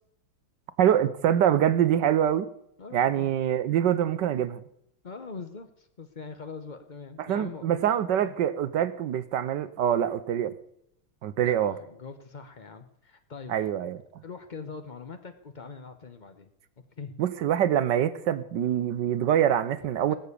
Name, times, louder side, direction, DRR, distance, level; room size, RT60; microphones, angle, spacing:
voice 1, 0.8-2.5 2.9-4.6 7.2-10.5 11.2-11.7 13.5-14.0 17.2-20.2, right 10 dB, 65° right, 14 dB, 1.2 m, -25 dB
voice 2, 2.8-3.3 5.0-7.7 8.2-8.3 11.4-13.5 14.2-16.5 17.0-17.2 20.1-20.2, left 4 dB, 70° left, 8 dB, 0.4 m, -42 dB
19.0 x 7.1 x 8.4 m, 0.78 s
omnidirectional pair, 2.4 m